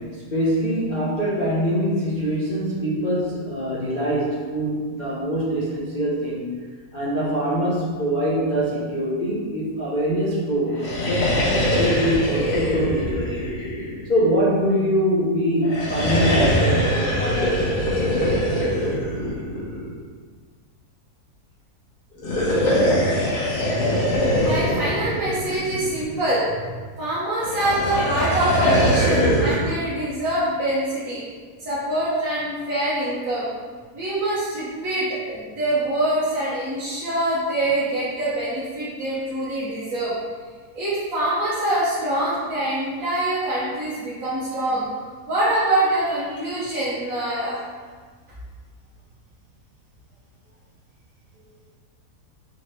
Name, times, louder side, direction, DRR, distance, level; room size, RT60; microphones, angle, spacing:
voice 1, 0.0-6.5 6.9-13.5 14.1-17.7, equal, 45° left, -9 dB, 0.6 m, -24 dB
sound 1, 10.7-14.3 15.6-19.9 22.1-26.1 27.4-29.7, equal, 90° left, 1.7 m, -22 dB
voice 2, 24.3-26.7 27.0-31.2 31.6-33.5 33.9-40.1 40.7-44.9 45.3-47.6, right 1 dB, 60° right, -11 dB, 1.4 m, -24 dB
4.8 x 3.1 x 3.1 m, 1.5 s
omnidirectional pair, 1.7 m